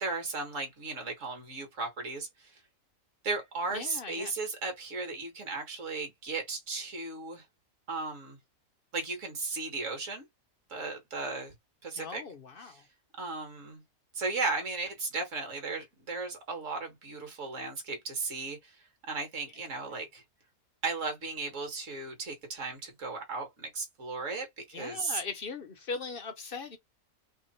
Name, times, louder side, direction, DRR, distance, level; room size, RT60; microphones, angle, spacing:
voice 1, 0.0-2.6 3.2-7.4 7.9-8.4 8.9-10.2 10.7-11.5 11.8-12.2 12.6-12.8 13.2-13.8 14.1-20.2 20.8-25.2, right 3 dB, 55° right, 2.0 m, -36 dB
voice 2, 3.7-4.3 12.0-12.8 24.7-26.8, left 4 dB, 50° left, 0.7 m, -39 dB
3.6 x 3.3 x 4.3 m
omnidirectional pair, 1.6 m